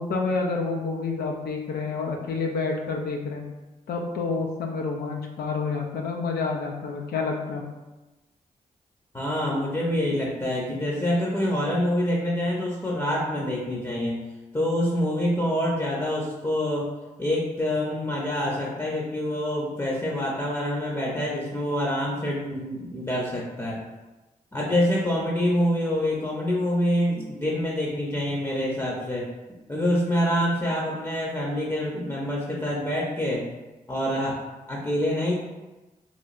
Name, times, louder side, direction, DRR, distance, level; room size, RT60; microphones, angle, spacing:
voice 1, 0.0-3.4 3.9-7.6, left 4 dB, 80° left, 1 dB, 0.4 m, -28 dB
voice 2, 9.1-14.2 14.5-16.9 17.2-23.8 24.5-29.3 29.7-33.4 33.9-34.4 34.7-35.3, left 1 dB, 15° left, -4 dB, 0.7 m, -26 dB
3.0 x 2.3 x 2.5 m, 1.1 s
supercardioid pair, 45°, 16 cm